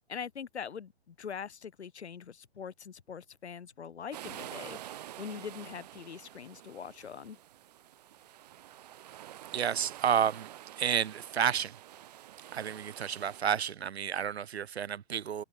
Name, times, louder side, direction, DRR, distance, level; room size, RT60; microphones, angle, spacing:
voice 1, 0.1-7.4, left 7 dB, 80° left, 2.1 m, -43 dB
sound 1, 4.1-13.4, right 12 dB, 40° right, 2.1 m, -48 dB
voice 2, 9.5-10.5 10.8-11.8 12.5-15.4, right 8 dB, 70° right, 1.3 m, -30 dB
hypercardioid pair, 165°, 33 cm